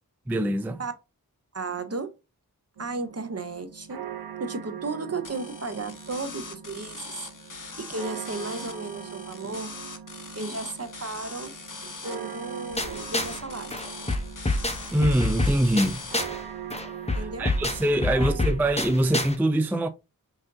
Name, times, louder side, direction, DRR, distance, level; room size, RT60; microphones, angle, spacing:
voice 1, 0.3-0.8 14.9-16.0 17.1-19.9, right 1 dB, 5° right, 0.3 m, -24 dB
voice 2, 1.5-2.1 2.8-4.0 4.4-9.7 10.4-11.5 11.8-13.8 17.1-17.5 18.1-18.4, right 3 dB, 45° right, 0.7 m, -34 dB
sound 1, 2.8-19.4, right 9 dB, 85° right, 0.6 m, -42 dB
sound 2, 5.2-16.2, left 4 dB, 55° left, 0.9 m, -42 dB
sound 3, 12.8-13.4 13.7-16.4 16.7-19.3, left 2 dB, 15° left, 0.7 m, -28 dB
5.6 x 2.5 x 2.6 m
wide cardioid pair, 40°, 36 cm